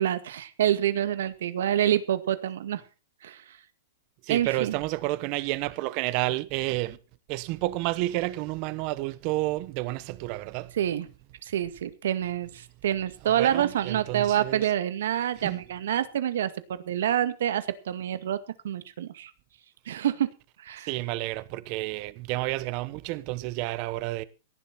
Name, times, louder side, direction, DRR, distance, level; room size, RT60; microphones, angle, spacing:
voice 1, 0.0-2.8 3.2-3.4 4.3-4.8 10.7-11.1 11.4-18.4 18.6-19.3 19.9-20.3 20.6-20.9, right 11 dB, 70° right, 2.0 m, -27 dB
voice 2, 4.3-7.0 7.3-10.7 13.4-14.6 15.4-15.6 20.9-24.2, right 18 dB, 35° right, 1.1 m, -30 dB
17.5 x 11.5 x 4.3 m
supercardioid pair, 165°, 0 cm